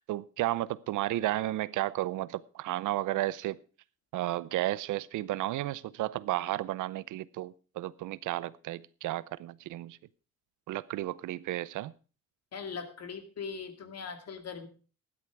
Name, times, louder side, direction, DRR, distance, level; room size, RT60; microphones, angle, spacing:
voice 1, 0.0-3.6 4.1-10.0 10.7-11.9, right 15 dB, 80° right, 0.7 m, -33 dB
voice 2, 12.5-14.7, left 5 dB, 55° left, 2.4 m, -40 dB
13.0 x 11.0 x 4.6 m
cardioid pair, 90°, 30 cm